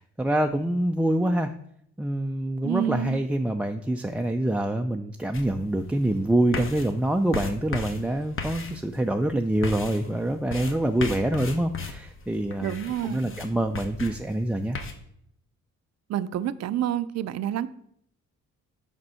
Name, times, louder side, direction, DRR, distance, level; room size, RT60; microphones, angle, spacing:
voice 1, 0.0-1.5 2.0-12.7 13.0-14.8, right 1 dB, 5° right, 4 dB, 0.3 m, -26 dB
voice 2, 2.6-3.2 12.6-13.4 16.1-17.7, right 11 dB, 60° right, 14 dB, 0.5 m, -28 dB
sound 1, 5.3-14.9, left 4 dB, 45° left, 1.1 m, -37 dB
5.3 x 5.2 x 5.6 m, 0.71 s
cardioid pair, 90°, 30 cm